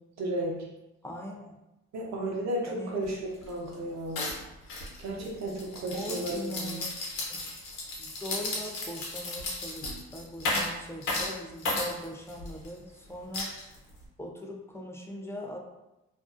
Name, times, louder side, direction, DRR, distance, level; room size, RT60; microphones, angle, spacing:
voice 1, 0.2-0.7 1.9-3.2 3.5-4.2 5.0-6.8, right 1 dB, 65° right, -1 dB, 0.7 m, -33 dB
voice 2, 1.0-1.6 2.6-3.0 5.9-6.8 7.1-7.4 8.0-13.6 14.2-15.6, left 1 dB, 10° left, 0 dB, 0.4 m, -40 dB
sound 1, 3.0-3.1 3.4-3.7 4.2-12.7 13.3-14.0, left 2 dB, 80° left, 0.8 m, -34 dB
2.5 x 2.0 x 2.4 m, 0.96 s
cardioid pair, 90°, 30 cm